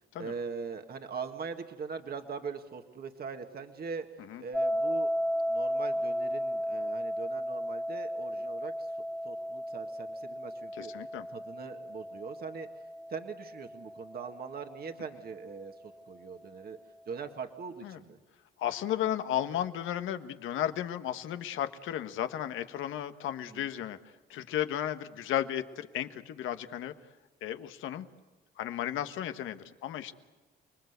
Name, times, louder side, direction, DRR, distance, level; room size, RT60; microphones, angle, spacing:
voice 1, 0.2-4.1 4.4-5.1 5.5-8.9 9.2-10.9 11.3-12.7 13.1-16.8 17.1-18.2 23.5-23.7, right 5 dB, 50° right, 5 dB, 1.9 m, -41 dB
sound 1, 4.5-15.5, equal, 5° left, 2.0 m, -35 dB
voice 2, 10.7-11.3 17.8-18.0 18.6-24.0 24.3-26.9 27.4-28.1 28.6-30.1, left 11 dB, 85° left, 9 dB, 1.4 m, -34 dB
29.5 x 20.5 x 8.2 m, 1.2 s
cardioid pair, 90°, 20 cm